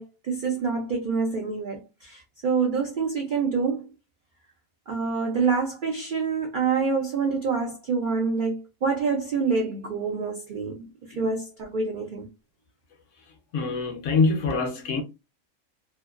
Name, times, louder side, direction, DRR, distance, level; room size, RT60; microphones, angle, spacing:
voice 1, 0.0-3.9 4.9-12.3, right 5 dB, 85° right, 0.4 m, -27 dB
voice 2, 13.5-15.0, left 4 dB, 65° left, 0.9 m, -24 dB
2.6 x 2.2 x 2.3 m
omnidirectional pair, 1.5 m